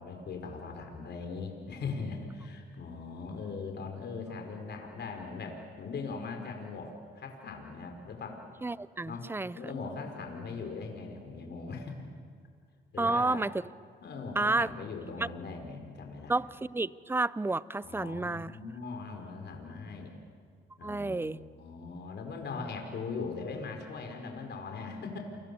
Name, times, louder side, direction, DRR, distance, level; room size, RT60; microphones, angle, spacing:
voice 1, 0.0-8.4 9.0-9.3 9.5-12.0 12.9-13.4 14.0-16.4 17.8-20.1 20.8-25.2, left 4 dB, 60° left, 3 dB, 5.0 m, -40 dB
voice 2, 8.6-9.6 13.0-13.5 14.4-14.7 15.2-15.3 16.3-18.5 20.8-21.4, right 2 dB, 10° right, 19 dB, 0.6 m, -30 dB
30.0 x 24.5 x 7.0 m, 2.1 s
cardioid pair, 90°, 20 cm